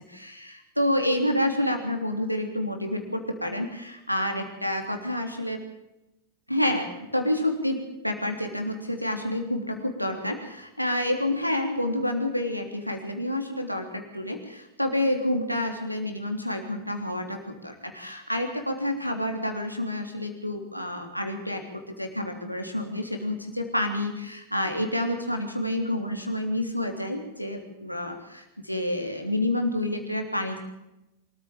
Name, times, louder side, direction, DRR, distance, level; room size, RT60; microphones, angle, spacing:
voice 1, 0.1-5.6 6.5-30.6, left 1 dB, 90° left, 3 dB, 3.4 m, -29 dB
25.0 x 14.5 x 7.2 m, 0.92 s
figure-of-eight pair, 90°, 0 cm